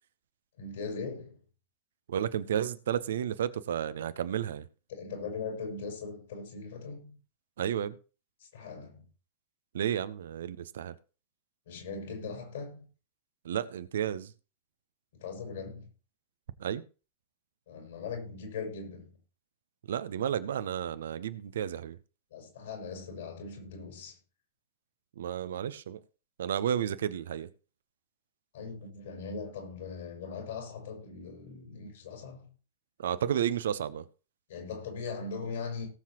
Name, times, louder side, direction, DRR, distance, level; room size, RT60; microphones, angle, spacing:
voice 1, 0.6-1.4 4.9-7.2 8.4-9.0 11.7-12.9 15.1-15.9 17.7-19.1 22.3-24.2 28.5-32.5 34.5-35.9, left 4 dB, 60° left, 5.8 m, -40 dB
voice 2, 2.1-4.6 7.6-8.0 9.7-10.9 13.4-14.3 16.6-16.8 19.9-22.0 25.2-26.0 26.4-27.5 33.0-34.0, right 9 dB, 60° right, 0.8 m, -32 dB
18.0 x 7.4 x 3.0 m
figure-of-eight pair, 90°, 0 cm